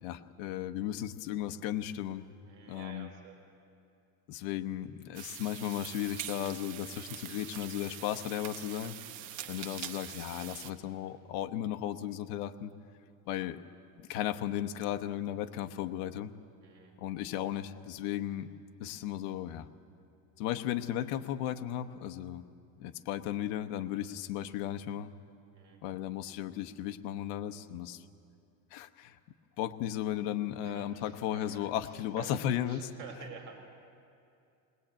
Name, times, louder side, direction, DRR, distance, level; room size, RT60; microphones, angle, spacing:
voice 1, 0.0-2.3 2.7-3.1 4.3-8.9 9.5-12.7 13.3-13.6 14.0-16.3 17.0-18.5 18.8-19.7 20.4-22.4 22.8-25.1 25.8-28.0 28.7-29.2 29.6-32.9, left 11 dB, 70° left, 7 dB, 1.0 m, -35 dB
voice 2, 2.5-3.4 8.9-9.7 16.6-16.9 25.5-25.8 30.6-32.3 32.7-33.6, right 5 dB, 50° right, 3 dB, 4.6 m, -51 dB
sound 1, 5.1-10.7, right 12 dB, 65° right, 1.4 m, -44 dB
20.5 x 20.0 x 8.9 m, 2.5 s
cardioid pair, 165°, 41 cm